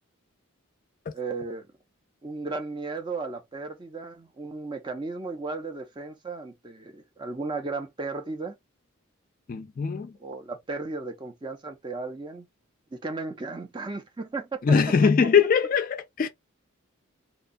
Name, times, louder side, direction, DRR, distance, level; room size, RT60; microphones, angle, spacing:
voice 1, 1.1-1.7 2.2-8.5 10.2-12.5 12.9-14.6, right 3 dB, 20° right, 0.5 m, -35 dB
voice 2, 9.5-10.2 14.6-16.3, left 6 dB, 40° left, 0.3 m, -21 dB
2.8 x 2.2 x 2.5 m
head